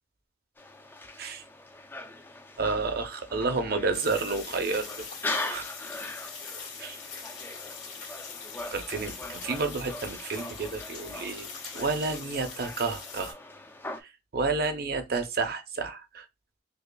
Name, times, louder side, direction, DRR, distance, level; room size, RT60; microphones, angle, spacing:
sound 1, 0.6-14.0, left 2 dB, 10° left, 0.3 m, -41 dB
voice 1, 2.6-4.8 5.5-5.7 6.8-7.0 8.7-11.5 11.7-13.4 14.0-16.3, right 3 dB, 50° right, 0.6 m, -30 dB
sound 2, 3.9-13.3, left 5 dB, 75° left, 1.7 m, -42 dB
4.9 x 2.3 x 2.2 m
head